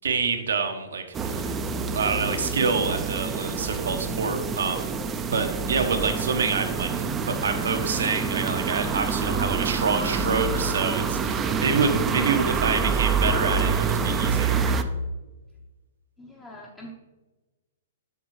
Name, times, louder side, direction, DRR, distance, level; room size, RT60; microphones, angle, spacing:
voice 1, 0.0-1.6 1.9-4.9 5.3-14.7, right 5 dB, 85° right, 6 dB, 1.1 m, -27 dB
sound 1, 1.1-14.8, right 5 dB, 15° right, 0.5 m, -27 dB
voice 2, 16.2-16.9, left 1 dB, 15° left, -2 dB, 0.8 m, -43 dB
7.2 x 6.9 x 3.1 m, 1.1 s
hypercardioid pair, 145°, 0 cm